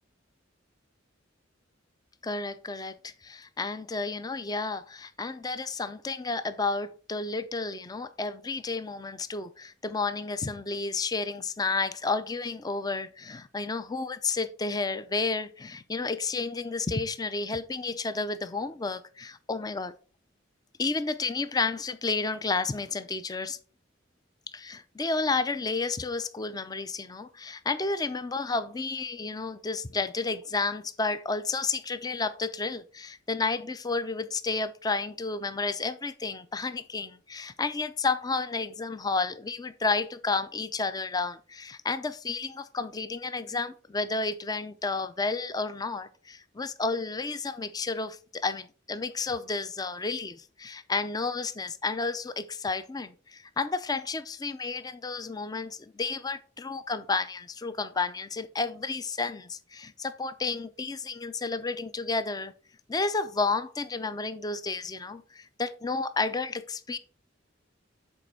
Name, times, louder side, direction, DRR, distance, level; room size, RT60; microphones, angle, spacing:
voice 1, 2.2-19.9 20.8-23.6 24.5-62.5 62.9-67.0, left 3 dB, 20° left, 0.5 m, -31 dB
7.6 x 4.1 x 4.4 m
head